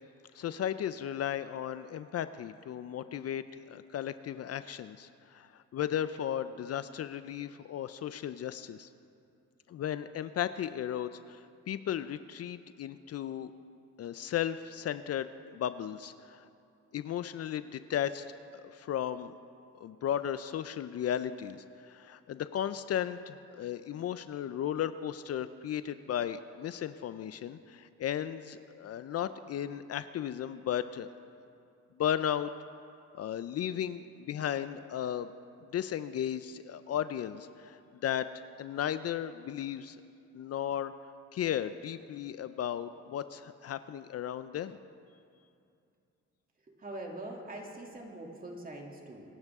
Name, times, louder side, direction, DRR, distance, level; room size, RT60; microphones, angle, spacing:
voice 1, 0.3-8.9 9.7-13.5 14.0-16.5 16.9-18.3 18.5-19.3 19.8-31.1 32.0-32.5 33.1-35.3 35.7-38.3 38.6-40.0 40.3-40.9 41.3-44.8, left 10 dB, 55° left, 13 dB, 0.5 m, -35 dB
voice 2, 46.8-49.2, right 1 dB, 30° right, 0 dB, 2.7 m, -43 dB
25.0 x 12.0 x 3.6 m, 2.5 s
cardioid pair, 90°, 30 cm